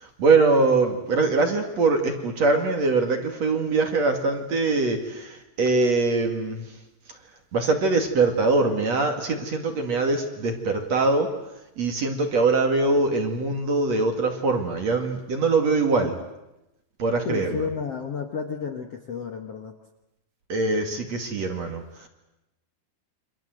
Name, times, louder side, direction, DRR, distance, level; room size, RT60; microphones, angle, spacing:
voice 1, 0.0-6.7 7.1-7.2 7.5-11.3 11.8-16.1 17.0-17.7 20.5-22.1, right 3 dB, 45° right, 4 dB, 3.0 m, -23 dB
voice 2, 17.3-19.7, left 6 dB, 55° left, 4 dB, 1.9 m, -31 dB
28.5 x 25.5 x 8.0 m, 0.93 s
omnidirectional pair, 4.8 m